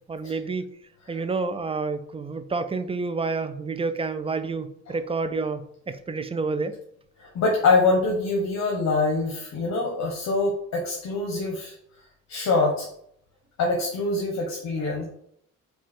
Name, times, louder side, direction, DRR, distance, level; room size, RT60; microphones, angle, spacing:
voice 1, 0.1-0.6 1.1-5.6 5.9-6.7, right 4 dB, 20° right, 10 dB, 0.4 m, -29 dB
voice 2, 7.2-11.7 12.3-12.9 13.6-15.0, left 3 dB, 65° left, 0 dB, 1.1 m, -24 dB
4.6 x 2.3 x 4.3 m, 0.69 s
cardioid pair, 90°, 30 cm